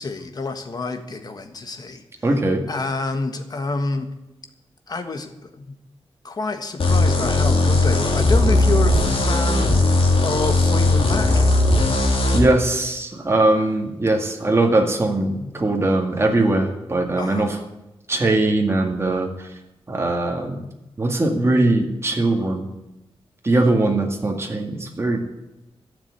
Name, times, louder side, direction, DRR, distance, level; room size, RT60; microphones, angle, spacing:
voice 1, 0.0-2.0 2.7-4.1 4.9-5.8 6.2-11.5 17.2-17.6, left 3 dB, 40° left, 7 dB, 1.5 m, -28 dB
voice 2, 2.2-2.6 12.3-17.6 18.1-19.5 19.9-20.6 21.0-22.7 23.4-25.2, right 2 dB, 25° right, 2 dB, 2.0 m, -20 dB
sound 1, 6.8-12.4, left 2 dB, 65° left, 3.0 m, -18 dB
12.5 x 7.4 x 9.3 m, 0.97 s
wide cardioid pair, 145°, 10 cm